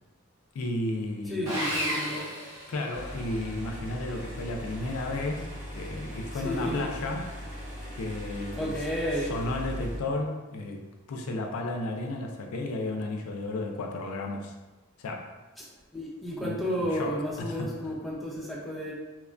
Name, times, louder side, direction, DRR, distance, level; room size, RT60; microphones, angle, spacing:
voice 1, 0.5-1.5 2.7-5.5 5.8-7.4 7.9-8.9 9.1-14.5 15.0-15.3 16.4-17.9, left 2 dB, 80° left, 3 dB, 0.4 m, -33 dB
voice 2, 1.3-2.3 6.4-6.9 8.6-9.3 15.6-15.7 15.9-18.9, equal, ahead, -5 dB, 0.4 m, -32 dB
Sawing, 1.5-3.4, equal, 65° right, 0.9 m, -33 dB
sound 1, 2.9-10.0, equal, 35° right, 0.9 m, -39 dB
3.0 x 2.1 x 2.4 m, 1.2 s
head